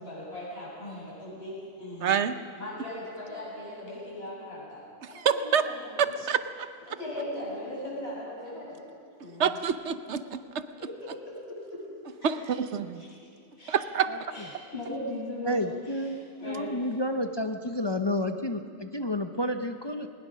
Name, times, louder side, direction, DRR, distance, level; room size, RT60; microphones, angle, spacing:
voice 1, 0.0-2.1 2.5-4.8 5.1-6.1 6.9-8.8 9.2-9.6 10.8-11.8 12.2-12.3 13.0-13.2 13.6-16.1 16.4-16.8, left 1 dB, 50° left, -6 dB, 7.8 m, -39 dB
voice 2, 2.0-2.4 5.1-5.7 6.0-6.7 9.4-10.6 12.2-13.0 13.7-14.1, right 7 dB, 60° right, 11 dB, 1.1 m, -27 dB
voice 3, 15.5-20.1, left 1 dB, 30° left, 6 dB, 0.5 m, -30 dB
21.0 x 19.5 x 6.3 m, 2.2 s
omnidirectional pair, 1.4 m